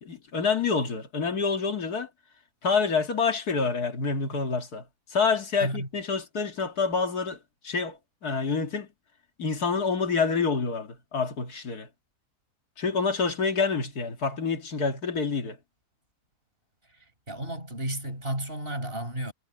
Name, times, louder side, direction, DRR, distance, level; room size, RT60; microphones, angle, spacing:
voice 1, 0.0-2.1 2.6-4.8 5.1-7.4 7.6-8.9 9.4-11.9 12.8-15.6, left 5 dB, 65° left, 2.5 m, -27 dB
voice 2, 17.3-19.3, right 1 dB, 35° right, 8.3 m, -32 dB
omnidirectional pair, 1.8 m